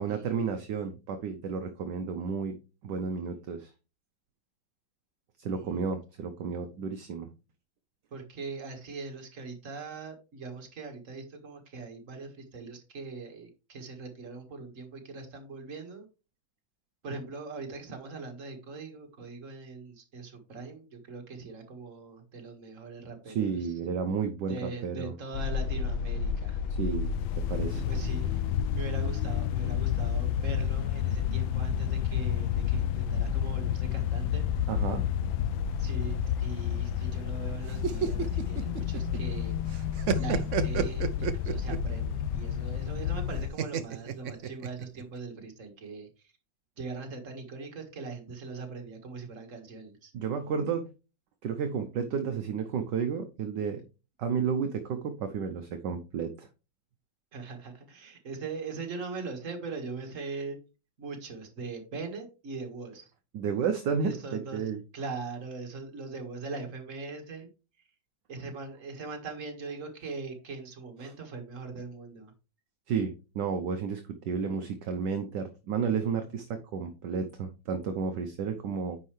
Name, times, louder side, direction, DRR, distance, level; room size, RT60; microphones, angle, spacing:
voice 1, 0.0-2.6 2.8-3.7 5.4-7.3 23.3-25.1 26.8-27.8 34.7-35.1 50.1-50.9 51.4-53.8 54.2-56.5 63.3-64.8 71.0-71.1 72.9-79.0, right 6 dB, 65° right, 7 dB, 1.3 m, -32 dB
voice 2, 5.4-5.8 8.1-16.1 17.0-23.7 24.5-26.6 27.8-28.4 28.7-34.5 35.8-39.6 40.2-46.1 46.8-50.1 57.3-60.6 61.0-63.1 64.0-64.6 64.9-67.5 68.3-72.3, right 4 dB, 40° right, 4 dB, 1.9 m, -41 dB
sound 1, 25.3-43.5, left 8 dB, 80° left, 1.4 m, -30 dB
sound 2, 37.7-39.4 39.7-41.9 43.6-45.0, right 7 dB, 85° right, 0.6 m, -30 dB
9.5 x 5.6 x 3.2 m, 0.31 s
omnidirectional pair, 2.2 m